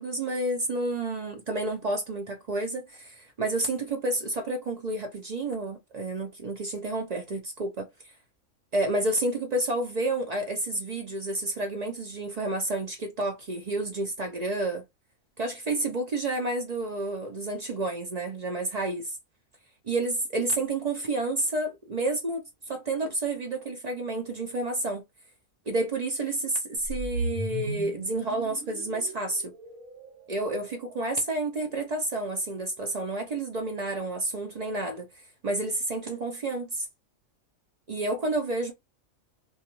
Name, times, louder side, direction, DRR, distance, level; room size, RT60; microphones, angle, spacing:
voice 1, 0.0-7.9 8.7-14.8 15.4-19.2 19.8-25.0 25.7-29.5 30.3-35.1 35.4-36.9 37.9-38.7, right 2 dB, 60° right, 0.4 m, -30 dB
sound 1, 26.8-31.1, right 1 dB, 80° right, 1.2 m, -36 dB
2.3 x 2.3 x 2.9 m
omnidirectional pair, 1.4 m